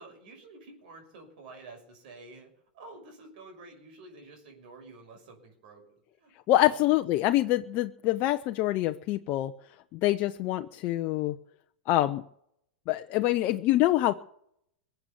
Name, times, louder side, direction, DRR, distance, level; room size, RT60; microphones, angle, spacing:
voice 1, 0.0-2.5 2.7-5.8 6.2-6.8, right 3 dB, 65° right, 3 dB, 6.2 m, -49 dB
voice 2, 6.5-9.5 9.9-11.3 11.9-12.2 12.9-14.1, left 15 dB, 45° left, 7 dB, 0.8 m, -25 dB
22.5 x 8.0 x 7.1 m, 0.71 s
hypercardioid pair, 105°, 5 cm